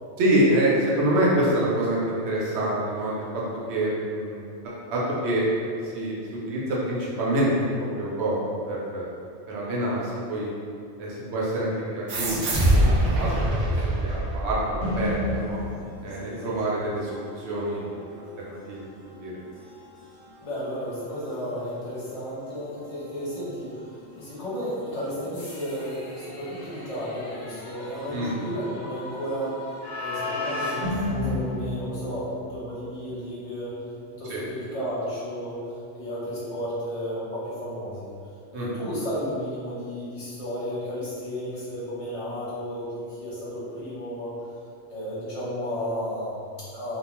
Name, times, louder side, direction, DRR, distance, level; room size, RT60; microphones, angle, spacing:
voice 1, 0.2-3.4 3.7-5.4 5.9-6.1 6.5-7.5 8.0-8.4 8.7-9.1 9.5-10.5 11.0-13.4 14.0-15.6 16.0-19.3 28.1-28.3 34.3-34.4 38.5-38.7, right 1 dB, 80° right, -5 dB, 0.9 m, -26 dB
sound 1, 12.1-15.1, right 1 dB, 60° right, 0.5 m, -23 dB
sound 2, 14.8-32.5, left 1 dB, 85° left, 1.0 m, -36 dB
voice 2, 16.2-16.6 20.4-29.5 30.0-33.7 34.2-35.6 35.9-38.1 38.5-44.3 44.9-47.0, equal, 30° left, -10 dB, 0.8 m, -33 dB
sound 3, 31.1-35.1, left 2 dB, 65° left, 0.8 m, -39 dB
2.3 x 2.2 x 2.9 m, 2.4 s
omnidirectional pair, 1.1 m